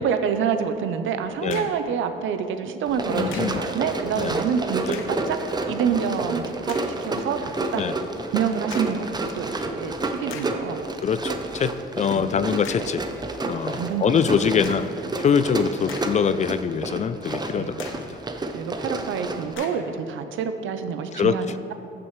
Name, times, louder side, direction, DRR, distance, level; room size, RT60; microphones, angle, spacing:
voice 1, 0.0-7.8 8.3-10.8 12.1-12.5 13.7-14.1 15.8-15.9 17.6-17.8 18.5-21.7, right 7 dB, 80° right, 9 dB, 0.6 m, -27 dB
sound 1, 1.2-1.9 3.3-3.7 4.8-5.3 5.9-6.0 6.7-7.0 8.7-9.1 9.8-9.9 10.3-10.7 12.6-13.0 14.6-15.0 15.6-16.5 16.8-16.9 17.8-18.2 19.6-20.0, left 7 dB, 85° left, 0.7 m, -41 dB
Run, 2.9-19.5, right 2 dB, 20° right, 0.6 m, -30 dB
voice 2, 3.1-3.6 4.1-4.3 4.9-5.0 7.7-8.0 11.0-13.0 13.4-14.9 15.2-18.2 21.1-21.4, left 6 dB, 35° left, 13 dB, 0.4 m, -24 dB
13.5 x 6.1 x 3.2 m, 2.7 s
cardioid pair, 90°, 20 cm